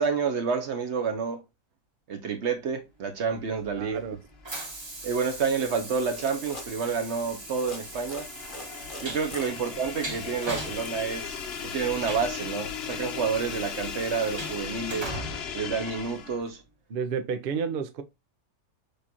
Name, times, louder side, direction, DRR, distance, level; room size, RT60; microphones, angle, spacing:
voice 1, 0.0-1.4 2.1-4.0 5.0-8.3 9.0-11.4 11.6-15.1 15.5-16.6, right 5 dB, 55° right, 0.8 m, -29 dB
Train, 3.3-16.5, right 2 dB, 25° right, 0.7 m, -41 dB
voice 2, 3.8-4.2 16.9-18.0, right 6 dB, 80° right, 0.5 m, -31 dB
sound 1, 4.6-16.5, left 7 dB, 60° left, 0.6 m, -38 dB
sound 2, 5.9-6.7 7.5-7.8 8.1-11.1, left 2 dB, 35° left, 1.1 m, -43 dB
6.6 x 2.4 x 2.7 m
omnidirectional pair, 1.6 m